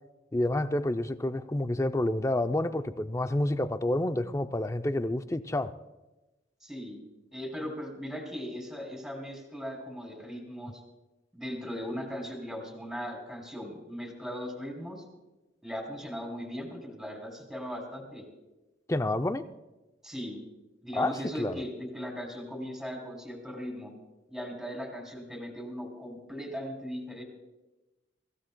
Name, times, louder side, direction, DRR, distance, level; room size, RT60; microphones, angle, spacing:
voice 1, 0.3-5.7 18.9-19.4 21.0-21.6, left 1 dB, 15° left, 10 dB, 0.5 m, -29 dB
voice 2, 6.6-7.0 7.3-10.8 11.3-15.0 15.6-18.2 20.0-20.4 20.8-23.9 24.3-27.2, equal, ahead, 1 dB, 3.2 m, -38 dB
24.5 x 15.5 x 2.2 m, 1.1 s
head